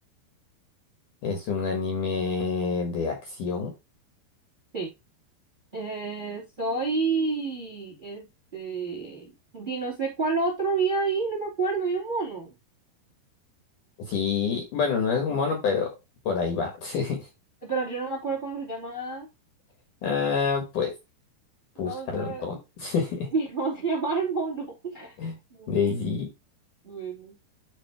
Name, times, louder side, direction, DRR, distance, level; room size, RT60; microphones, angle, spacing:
voice 1, 1.2-3.7 14.0-15.9 16.3-17.3 20.0-20.9 21.8-23.3 25.2-25.4 25.7-26.3, left 5 dB, 60° left, 3 dB, 2.5 m, -27 dB
voice 2, 5.7-8.3 8.5-12.5 17.6-19.3 21.8-22.4 23.3-25.1 25.5-25.9 26.8-27.3, right 4 dB, 15° right, 0 dB, 2.1 m, -29 dB
11.0 x 3.8 x 3.5 m, 0.24 s
omnidirectional pair, 5.0 m